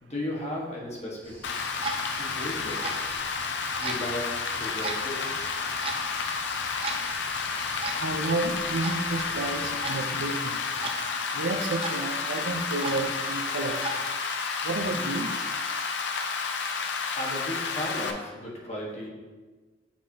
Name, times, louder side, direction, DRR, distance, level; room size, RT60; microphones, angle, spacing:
voice 1, 0.0-1.7 2.2-3.1 3.8-5.4 17.2-19.1, left 1 dB, 35° left, -4 dB, 1.4 m, -35 dB
sound 1, 1.2-9.9, equal, 10° left, 0.9 m, -48 dB
Rain, 1.4-18.1, left 5 dB, 70° left, 0.6 m, -31 dB
Clock, 1.5-14.0, right 2 dB, 30° right, 0.5 m, -40 dB
voice 2, 8.0-10.6 11.3-13.8 14.6-15.3, right 2 dB, 80° right, 6 dB, 0.6 m, -31 dB
8.2 x 4.3 x 2.8 m, 1.3 s
head